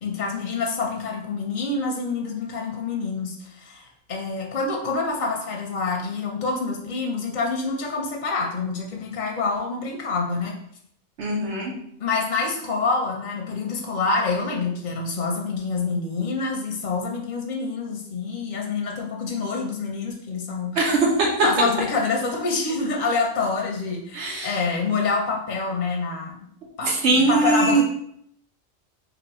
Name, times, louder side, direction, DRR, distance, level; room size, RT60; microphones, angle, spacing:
voice 1, 0.0-10.5 12.0-20.8 21.4-26.4 26.8-26.9 27.2-27.8, left 4 dB, 50° left, 1 dB, 0.6 m, -26 dB
voice 2, 11.2-11.7 20.8-21.3 24.1-24.6 26.8-27.8, right 3 dB, 80° right, -2 dB, 1.1 m, -21 dB
2.8 x 2.7 x 4.1 m, 0.70 s
omnidirectional pair, 1.2 m